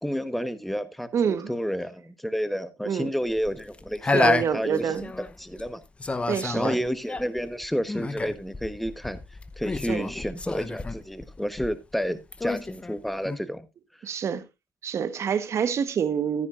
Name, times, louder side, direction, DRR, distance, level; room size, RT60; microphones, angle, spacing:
voice 1, 0.0-4.9 5.4-5.8 6.5-9.2 9.6-13.7, equal, ahead, 1.2 m, -30 dB
voice 2, 1.1-1.5 2.9-3.1 4.1-5.1 6.3-6.8 9.9-10.1 14.0-14.4 14.8-16.5, right 7 dB, 55° right, 1.3 m, -27 dB
sound 1, 3.3-5.7 6.0-12.0 12.3-13.4, left 3 dB, 20° left, 0.9 m, -29 dB
13.5 x 9.7 x 2.6 m
cardioid pair, 90°, 6 cm